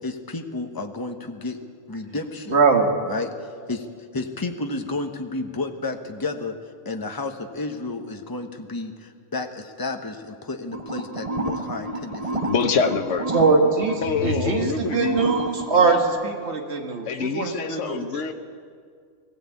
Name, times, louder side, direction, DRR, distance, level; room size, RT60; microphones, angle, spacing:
voice 1, 0.0-1.6 1.9-2.6 3.1-3.9 4.1-6.6 6.8-12.9, left 3 dB, 15° left, 5 dB, 1.1 m, -32 dB
voice 2, 2.5-2.9 13.3-18.1, right 4 dB, 55° right, 3 dB, 2.1 m, -22 dB
sound 1, 10.7-16.0, right 2 dB, 30° right, 1.3 m, -30 dB
voice 3, 12.4-13.3 14.0-15.2 17.0-18.3, left 5 dB, 65° left, 6 dB, 1.3 m, -25 dB
20.0 x 16.0 x 8.5 m, 2.1 s
omnidirectional pair, 1.3 m